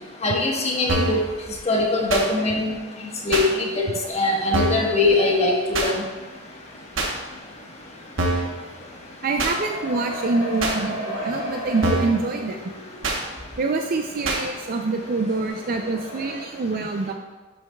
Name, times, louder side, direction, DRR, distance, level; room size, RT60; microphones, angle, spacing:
voice 1, 0.2-1.2 1.7-2.7 3.2-3.8 4.1-6.0, left 2 dB, 35° left, -1 dB, 1.3 m, -21 dB
sound 1, 0.9-1.2 2.1-2.3 3.3-3.5 4.5-4.9 5.7-5.9 7.0-7.1 8.2-8.5 9.4-9.6 10.6-10.8 11.8-12.2 13.0-13.2 14.2-14.4, right 2 dB, 75° right, 1.0 m, -24 dB
sound 2, 4.5-16.4, equal, 75° left, 1.9 m, -37 dB
voice 2, 9.2-12.6 13.6-17.1, right 3 dB, 45° right, 4 dB, 0.4 m, -25 dB
11.0 x 6.1 x 2.3 m, 1.2 s
head